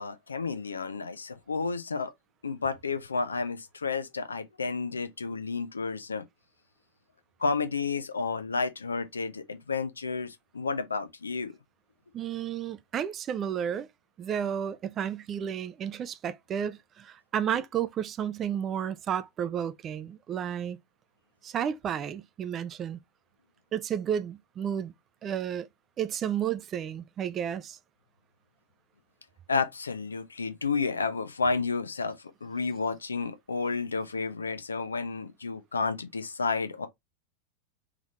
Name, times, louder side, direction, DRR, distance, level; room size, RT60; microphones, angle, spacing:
voice 1, 0.0-2.1 2.4-6.2 7.4-11.5 29.5-32.2 32.4-36.9, left 4 dB, 80° left, 0.8 m, -31 dB
voice 2, 12.1-13.9 14.2-20.8 21.4-23.0 23.7-24.9 25.2-25.7 26.0-27.8, right 9 dB, 30° right, 0.5 m, -32 dB
3.7 x 3.4 x 4.1 m
figure-of-eight pair, 90°, 0 cm